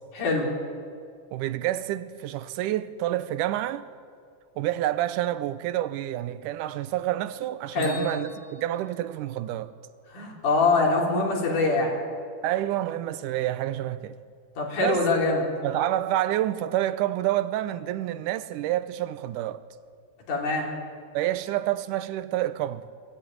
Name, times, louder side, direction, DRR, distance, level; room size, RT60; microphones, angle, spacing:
voice 1, 0.1-0.5 7.7-8.0 10.1-11.9 14.6-15.5 20.3-20.7, left 3 dB, 85° left, 5.1 m, -24 dB
voice 2, 1.3-3.9 4.6-9.7 12.4-14.2 14.8-15.1 15.6-19.6 21.1-23.0, right 13 dB, 90° right, 2.3 m, -28 dB
Bell, 7.8-9.8, left 2 dB, 5° left, 2.4 m, -46 dB
23.0 x 14.5 x 9.4 m
omnidirectional pair, 3.6 m